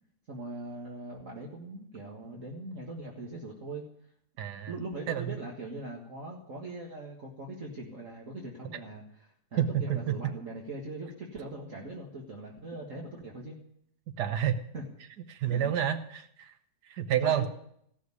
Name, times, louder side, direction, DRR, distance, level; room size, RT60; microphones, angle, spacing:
voice 1, 0.3-3.8 4.7-13.6 14.7-14.8 15.4-15.7 17.2-17.5, right 2 dB, 50° right, -2 dB, 2.1 m, -41 dB
voice 2, 4.4-4.7 5.1-5.4 9.6-10.2 14.2-14.6 15.3-16.5 16.9-17.5, right 9 dB, 80° right, 8 dB, 1.5 m, -29 dB
16.0 x 6.5 x 9.7 m, 0.70 s
omnidirectional pair, 1.7 m